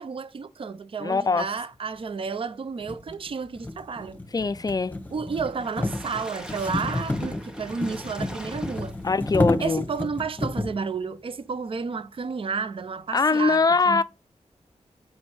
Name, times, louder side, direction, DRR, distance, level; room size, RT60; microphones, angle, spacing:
voice 1, 0.0-4.2 5.1-9.0 9.6-14.0, right 5 dB, 50° right, 0.5 m, -31 dB
voice 2, 1.0-1.5 4.3-5.0 9.0-9.9 13.1-14.0, left 4 dB, 30° left, 0.4 m, -22 dB
sound 1, 2.0-2.1 2.8-10.8, left 2 dB, 15° left, 1.1 m, -30 dB
Water / Splash splatter, 5.5-9.3 9.9-10.0 10.3-10.4, equal, 5° right, 1.4 m, -43 dB
5.9 x 4.3 x 4.8 m
wide cardioid pair, 90°, 12 cm